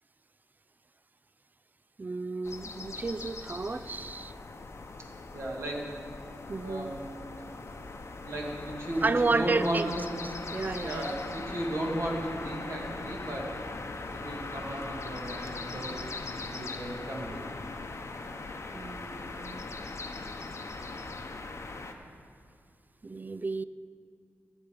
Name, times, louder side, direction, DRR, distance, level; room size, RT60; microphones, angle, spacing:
voice 1, 2.0-4.3 6.5-6.9 9.0-9.9 10.5-11.1 18.7-19.7 23.0-23.6, right 3 dB, 35° right, 15 dB, 0.4 m, -31 dB
sound 1, 2.4-21.9, left 3 dB, 60° left, 0.8 m, -40 dB
voice 2, 5.3-5.9 6.6-7.1 8.2-10.0 10.8-13.5 14.2-16.0 16.4-17.4, right 1 dB, 60° right, -2 dB, 2.3 m, -35 dB
14.0 x 7.8 x 5.2 m, 2.4 s
cardioid pair, 60°, 5 cm